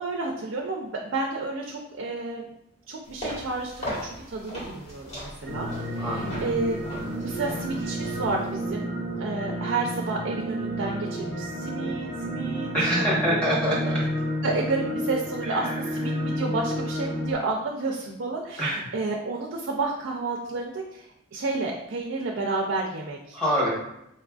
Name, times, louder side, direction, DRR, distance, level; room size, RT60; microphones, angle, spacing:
voice 1, 0.0-2.5 2.9-6.8 7.2-8.9 9.2-12.7 13.1-13.8 14.4-23.4, right 3 dB, 60° right, 0 dB, 0.4 m, -31 dB
sound 1, 3.0-8.7, left 1 dB, 30° left, 1.2 m, -39 dB
sound 2, 5.5-17.3, equal, 55° left, 0.9 m, -31 dB
voice 2, 6.0-6.5 12.7-14.0 15.4-15.8 18.6-18.8 23.3-23.7, equal, 5° left, -8 dB, 1.1 m, -26 dB
4.2 x 2.5 x 2.3 m, 0.82 s
head